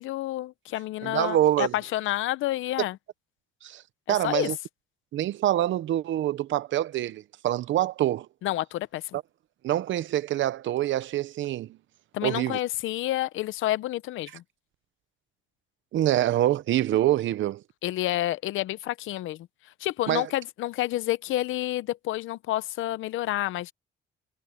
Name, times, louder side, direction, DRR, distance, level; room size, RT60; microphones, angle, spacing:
voice 1, 0.0-3.0 4.2-4.5 8.4-9.0 12.1-14.4 17.8-19.5 19.8-23.7, left 15 dB, 85° left, 0.7 m, -29 dB
voice 2, 1.0-1.7 3.6-3.8 4.1-4.6 5.1-8.3 9.1-9.2 9.6-11.8 12.2-12.6 15.9-17.6 20.1-20.3, right 13 dB, 75° right, 0.9 m, -25 dB
cardioid pair, 90°, 20 cm